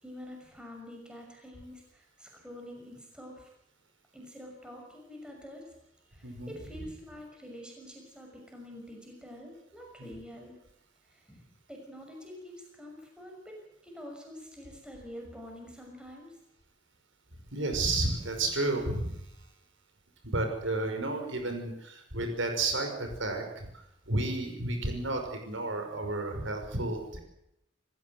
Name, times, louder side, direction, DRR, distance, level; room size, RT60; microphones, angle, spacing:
voice 1, 0.0-3.5 4.1-5.7 6.2-10.6 11.3-11.4 11.7-16.3, equal, 5° right, 1 dB, 6.1 m, -46 dB
voice 2, 6.2-6.5 6.8-6.9 10.0-10.1 17.5-19.2 20.2-27.2, right 2 dB, 80° right, 4 dB, 5.7 m, -32 dB
28.5 x 15.5 x 7.9 m, 0.81 s
head